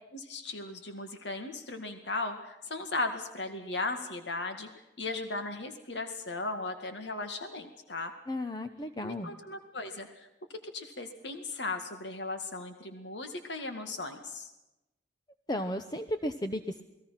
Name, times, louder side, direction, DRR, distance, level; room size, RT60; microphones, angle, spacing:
voice 1, 0.1-4.7 5.0-8.1 9.0-10.3 10.7-14.5, left 3 dB, 75° left, 6 dB, 2.0 m, -37 dB
voice 2, 8.3-9.3 15.5-16.8, left 1 dB, 25° left, 8 dB, 0.9 m, -34 dB
29.0 x 20.0 x 5.8 m, 0.96 s
head